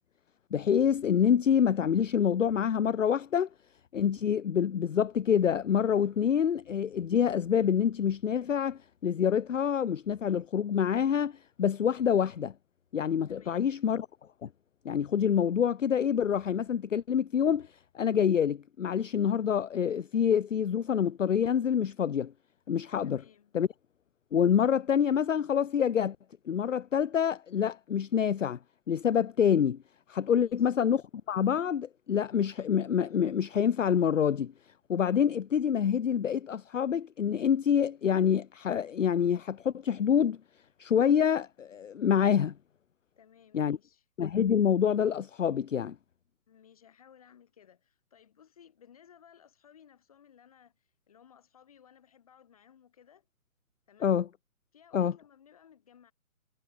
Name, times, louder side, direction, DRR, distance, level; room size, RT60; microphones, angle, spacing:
voice 1, 0.5-3.5 3.9-12.5 12.9-14.1 14.4-14.5 14.8-17.7 17.9-22.3 22.7-23.2 23.5-23.7 24.3-26.2 26.5-28.6 28.9-29.8 30.1-31.0 31.3-34.5 34.9-40.4 40.8-42.5 43.5-43.8 44.2-46.0 54.0-54.3 54.9-55.1, left 8 dB, 60° left, 0.7 m, -26 dB
voice 2, 13.3-13.8 23.0-23.5 30.4-30.8 43.2-44.0 46.5-53.3 53.9-54.2 54.7-56.1, left 8 dB, 25° left, 4.7 m, -59 dB
hypercardioid pair, 180°, 42 cm